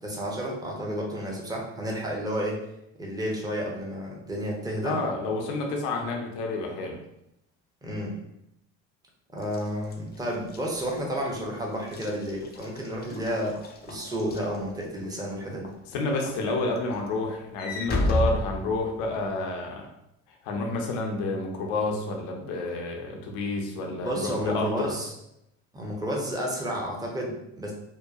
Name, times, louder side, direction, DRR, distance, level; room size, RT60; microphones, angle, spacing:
voice 1, 0.0-2.6 3.0-5.0 7.8-8.2 9.3-13.6 13.9-15.7 24.0-25.1 25.7-27.7, equal, 10° right, -2 dB, 0.8 m, -31 dB
voice 2, 4.8-7.0 15.9-19.9 20.4-24.9, left 2 dB, 75° left, 1 dB, 0.7 m, -29 dB
Walk footsteps / Slam, 9.4-15.1 15.6-15.9 16.3-19.3, left 2 dB, 25° left, 0.4 m, -33 dB
2.7 x 2.1 x 2.4 m, 0.81 s
hypercardioid pair, 60°, 39 cm